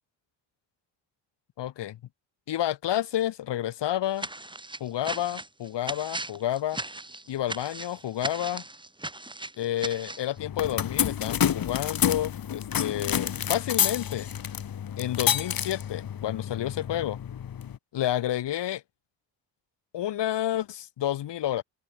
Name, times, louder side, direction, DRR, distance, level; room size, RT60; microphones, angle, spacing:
voice 1, 1.6-2.0 2.5-4.3 4.8-6.8 7.3-8.6 9.6-14.3 15.0-17.2 17.9-18.8 19.9-21.6, left 12 dB, 70° left, 5.5 m, -30 dB
sound 1, 4.2-10.3, right 2 dB, 10° right, 6.8 m, -37 dB
sound 2, 10.4-17.8, left 9 dB, 50° left, 3.8 m, -29 dB
cardioid pair, 110°, 43 cm